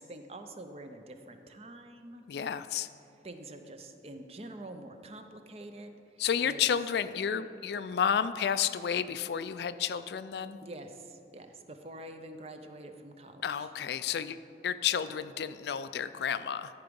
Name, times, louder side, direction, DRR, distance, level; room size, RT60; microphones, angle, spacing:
voice 1, 0.0-2.2 3.2-5.9 6.4-6.7 10.6-13.7, right 1 dB, 35° right, 7 dB, 0.5 m, -46 dB
voice 2, 2.3-2.9 6.2-10.6 13.4-14.4 14.6-16.7, left 8 dB, 65° left, 13 dB, 0.3 m, -31 dB
13.0 x 4.7 x 5.2 m, 2.6 s
head